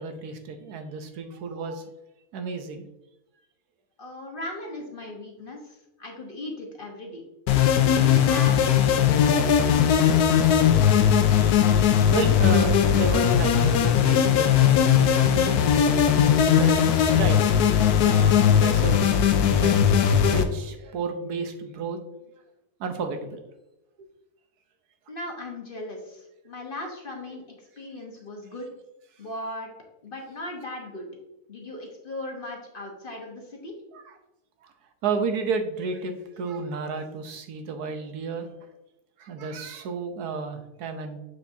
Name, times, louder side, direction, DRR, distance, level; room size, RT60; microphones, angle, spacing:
voice 1, 0.0-1.9 2.3-2.9 12.1-17.5 17.8-19.8 20.2-22.0 22.8-23.4 33.9-34.1 34.6-34.7 35.0-38.5 39.2-41.2, right 4 dB, 85° right, 6 dB, 1.3 m, -32 dB
voice 2, 4.0-7.2 7.8-10.4 25.1-27.4 27.8-28.7 29.2-29.7 30.0-31.1 31.5-33.7, left 2 dB, 40° left, 0 dB, 1.2 m, -37 dB
sound 1, 7.5-20.4, left 8 dB, 80° left, 1.2 m, -19 dB
6.9 x 6.4 x 2.7 m, 0.94 s
omnidirectional pair, 1.6 m